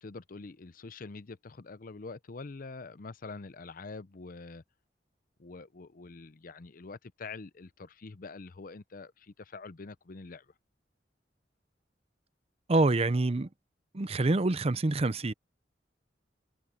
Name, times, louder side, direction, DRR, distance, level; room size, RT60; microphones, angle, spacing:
voice 1, 0.0-4.6 5.4-10.5, left 3 dB, 50° left, 0.6 m, -45 dB
voice 2, 12.7-13.5 13.9-15.3, right 2 dB, 35° right, 0.6 m, -26 dB
open air
head